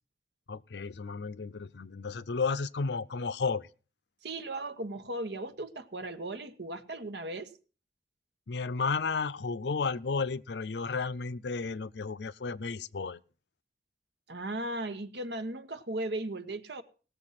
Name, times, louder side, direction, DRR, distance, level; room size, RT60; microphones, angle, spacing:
voice 1, 0.5-3.7 8.5-13.2, left 4 dB, 85° left, 0.6 m, -33 dB
voice 2, 4.2-7.5 14.3-16.8, right 1 dB, 80° right, 1.2 m, -37 dB
18.0 x 7.0 x 5.7 m
head